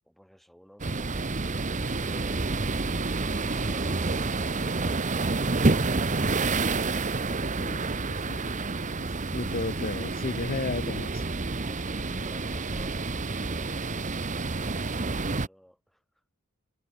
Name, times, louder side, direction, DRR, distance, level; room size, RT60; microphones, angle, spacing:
voice 1, 0.0-5.6 11.5-16.0, equal, ahead, 5.8 m, -54 dB
sound 1, 0.8-15.5, right 3 dB, 35° right, 1.0 m, -29 dB
voice 2, 7.6-8.6 9.3-11.2, left 3 dB, 40° left, 1.1 m, -34 dB
head